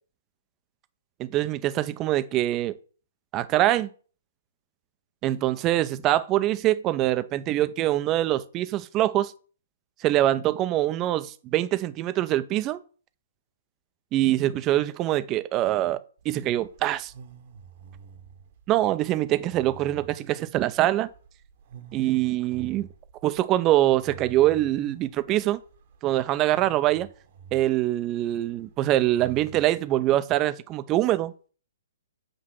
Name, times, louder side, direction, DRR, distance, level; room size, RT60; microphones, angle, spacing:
voice 1, 1.2-2.7 3.3-3.9 5.2-9.3 10.0-12.8 14.1-16.0 16.2-17.1 18.7-21.1 21.9-22.9 23.2-25.6 26.0-27.1 27.5-31.3, right 14 dB, 30° right, 0.5 m, -24 dB
sound 1, 16.2-29.6, right 6 dB, 50° right, 1.0 m, -48 dB
7.6 x 2.8 x 6.0 m
figure-of-eight pair, 125°, 0 cm